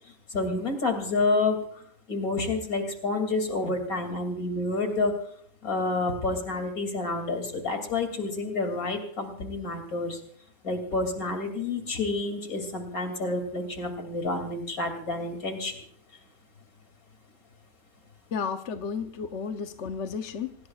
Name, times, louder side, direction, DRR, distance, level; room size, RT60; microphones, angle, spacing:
voice 1, 0.3-5.1 5.6-10.2 10.6-15.8, left 3 dB, 70° left, 5 dB, 3.2 m, -29 dB
voice 2, 18.3-20.6, left 6 dB, 55° left, 7 dB, 1.1 m, -33 dB
26.5 x 18.5 x 2.4 m, 0.63 s
omnidirectional pair, 1.5 m